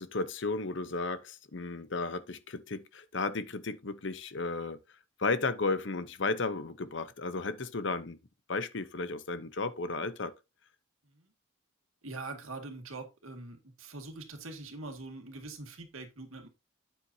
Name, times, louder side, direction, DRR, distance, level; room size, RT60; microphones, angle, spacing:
voice 1, 0.0-4.8 5.2-8.2 8.5-10.3, left 3 dB, 60° left, 0.8 m, -34 dB
voice 2, 12.0-16.5, right 3 dB, 85° right, 2.2 m, -43 dB
9.1 x 7.9 x 2.7 m
head